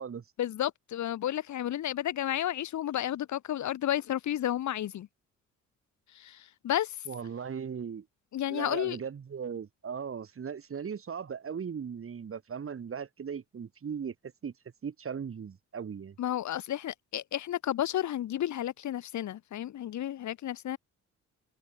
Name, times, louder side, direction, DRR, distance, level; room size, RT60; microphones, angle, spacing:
voice 1, 0.4-5.1 6.1-7.1 8.3-9.0 16.2-20.8, left 12 dB, 70° left, 2.1 m, -32 dB
voice 2, 7.1-8.1 8.5-14.5 14.8-16.2, right 7 dB, 45° right, 6.8 m, -38 dB
cardioid pair, 90°, 30 cm